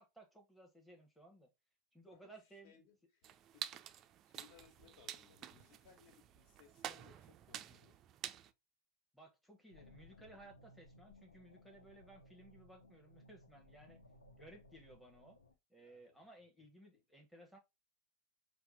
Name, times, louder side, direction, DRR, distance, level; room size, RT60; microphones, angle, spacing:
voice 1, 0.0-1.5 1.9-2.7 9.1-14.0 14.3-15.4 15.7-17.6, right 1 dB, ahead, 1.0 m, -59 dB
voice 2, 2.6-8.0 15.1-15.3 15.8-16.3, left 8 dB, 50° left, 1.6 m, -66 dB
sound 1, 3.2-8.5, right 11 dB, 30° right, 0.4 m, -49 dB
sound 2, 9.7-15.5, left 1 dB, 75° left, 0.6 m, -62 dB
5.7 x 2.2 x 4.1 m
figure-of-eight pair, 90°, 0 cm